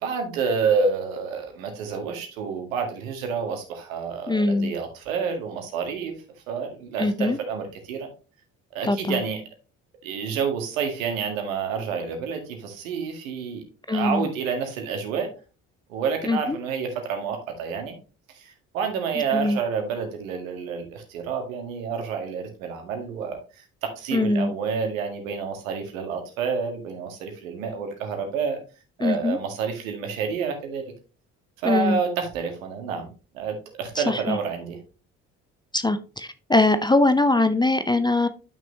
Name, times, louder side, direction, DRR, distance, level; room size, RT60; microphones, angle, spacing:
voice 1, 0.0-6.1 6.5-8.1 8.7-9.4 10.0-13.6 13.9-15.3 15.9-18.0 18.3-23.6 23.9-28.6 29.0-30.8 31.6-33.1 33.3-34.8, right 6 dB, 70° right, 5 dB, 1.7 m, -29 dB
voice 2, 4.3-4.7 7.0-7.4 8.9-9.2 13.9-14.3 16.2-16.6 19.3-19.6 24.1-24.5 29.0-29.4 31.6-32.0 34.0-34.4 35.7-38.3, left 2 dB, 10° left, 11 dB, 0.6 m, -22 dB
10.5 x 6.2 x 3.0 m, 0.34 s
figure-of-eight pair, 50°, 41 cm